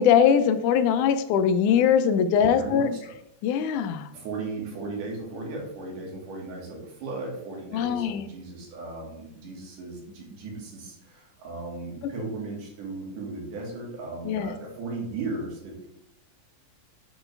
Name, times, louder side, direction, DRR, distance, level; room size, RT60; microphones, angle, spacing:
voice 1, 0.0-2.9 3.4-4.1 7.7-8.2 14.3-14.5, left 8 dB, 85° left, 10 dB, 2.0 m, -21 dB
voice 2, 2.4-3.2 4.1-15.9, right 3 dB, 85° right, -1 dB, 3.3 m, -36 dB
7.8 x 4.6 x 3.3 m, 0.80 s
omnidirectional pair, 3.5 m